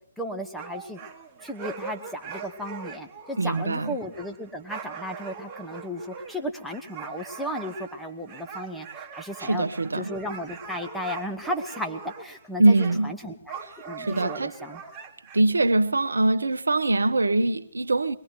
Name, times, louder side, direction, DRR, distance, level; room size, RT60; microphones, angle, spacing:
voice 1, 0.2-1.0 1.4-9.7 10.0-13.6 13.8-14.8, equal, ahead, 1.1 m, -34 dB
sound 1, 0.6-12.5 12.7-13.0 13.5-15.4, right 5 dB, 25° right, 1.6 m, -41 dB
voice 2, 3.4-3.9 9.4-10.1 12.6-13.1 14.0-14.6 15.3-18.2, right 2 dB, 80° right, 0.7 m, -23 dB
22.5 x 20.5 x 3.0 m
figure-of-eight pair, 135°, 0 cm